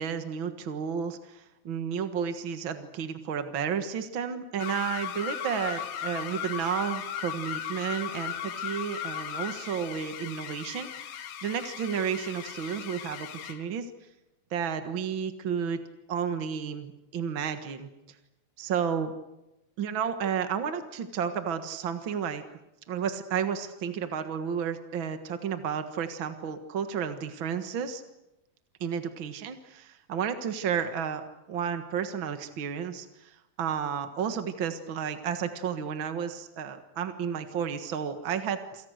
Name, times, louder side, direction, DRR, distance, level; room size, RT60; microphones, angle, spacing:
voice 1, 0.0-13.9 14.5-15.8 16.1-18.2 18.6-19.1 19.8-22.4 22.9-28.0 28.8-38.9, right 7 dB, 50° right, 8 dB, 1.5 m, -32 dB
sound 1, 4.6-13.7, left 9 dB, 80° left, 3.4 m, -37 dB
28.5 x 27.0 x 6.5 m, 0.89 s
omnidirectional pair, 4.4 m